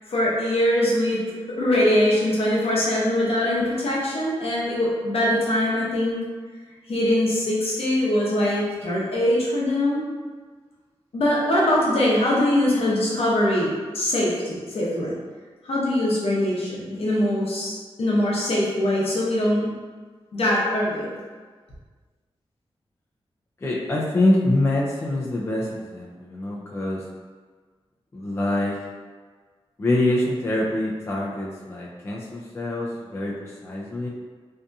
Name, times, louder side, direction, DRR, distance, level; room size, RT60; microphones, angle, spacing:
voice 1, 0.0-6.2 6.9-10.0 11.1-15.2 15.6-19.7 20.3-21.2, left 1 dB, 70° left, -5 dB, 0.7 m, -22 dB
voice 2, 23.6-27.1 28.1-28.8 29.8-34.1, left 1 dB, 25° left, -5 dB, 0.4 m, -25 dB
2.7 x 2.5 x 2.3 m, 1.5 s
wide cardioid pair, 130°, 10 cm